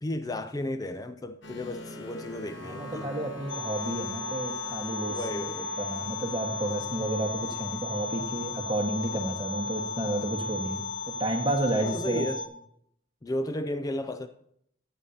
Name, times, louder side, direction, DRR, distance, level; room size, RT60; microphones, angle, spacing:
voice 1, 0.0-3.1 5.1-5.7 11.8-12.4 13.2-14.3, left 1 dB, 15° left, 0.3 m, -33 dB
sound 1, 1.4-11.5, equal, 60° left, 1.2 m, -45 dB
voice 2, 2.6-5.4 5.8-12.3, right 1 dB, 20° right, 1.6 m, -31 dB
sound 2, 3.5-12.5, left 3 dB, 75° left, 1.5 m, -35 dB
15.5 x 9.5 x 2.9 m
head